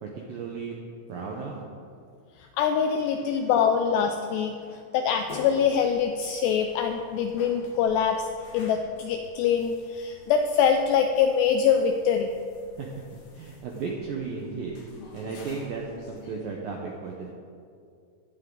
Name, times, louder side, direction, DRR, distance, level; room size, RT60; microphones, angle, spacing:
voice 1, 0.0-0.7 1.1-1.6 2.9-3.5 4.6-4.8 12.8-12.9 13.3-14.8 15.1-17.3, right 4 dB, 80° right, -1 dB, 2.0 m, -35 dB
voice 2, 2.4-4.5 4.9-12.3, left 7 dB, 85° left, 5 dB, 2.4 m, -24 dB
sound 1, 5.1-16.4, left 2 dB, 60° left, 1.7 m, -48 dB
15.5 x 11.0 x 3.9 m, 2.3 s
omnidirectional pair, 5.4 m